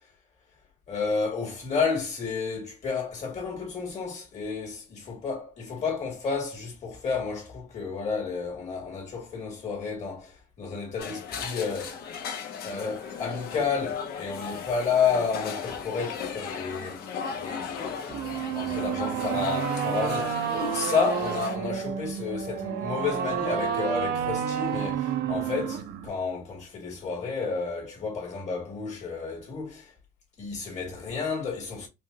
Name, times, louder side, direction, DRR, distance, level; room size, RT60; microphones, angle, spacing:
voice 1, 0.9-4.7 5.1-12.0 12.6-17.0 17.4-18.0 18.4-29.9 30.4-31.9, left 5 dB, 40° left, 2.3 m, -31 dB
sound 1, 11.0-21.6, left 6 dB, 65° left, 1.1 m, -36 dB
sound 2, 18.1-26.1, right 9 dB, 75° right, 0.7 m, -30 dB
5.1 x 2.5 x 2.8 m
cardioid pair, 110°, 17 cm